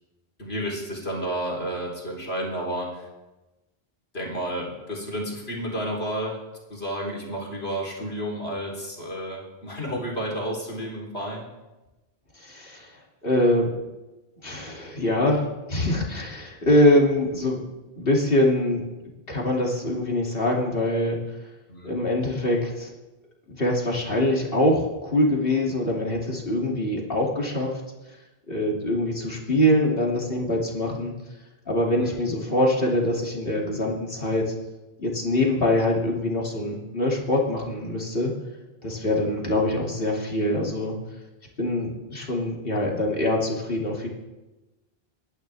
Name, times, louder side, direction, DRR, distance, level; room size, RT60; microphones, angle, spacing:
voice 1, 0.4-3.1 4.1-6.4 6.7-11.5 21.7-21.9 32.0-32.1 39.3-39.4, equal, 80° left, -3 dB, 4.0 m, -31 dB
voice 2, 12.4-12.9 13.2-13.7 14.4-17.6 18.0-18.8 19.3-21.2 21.8-22.9 23.6-27.7 28.5-31.1 31.7-34.5 35.0-38.3 38.8-40.9 41.6-44.1, left 1 dB, 65° left, -2 dB, 3.0 m, -24 dB
29.5 x 11.0 x 3.5 m, 1.1 s
omnidirectional pair, 1.0 m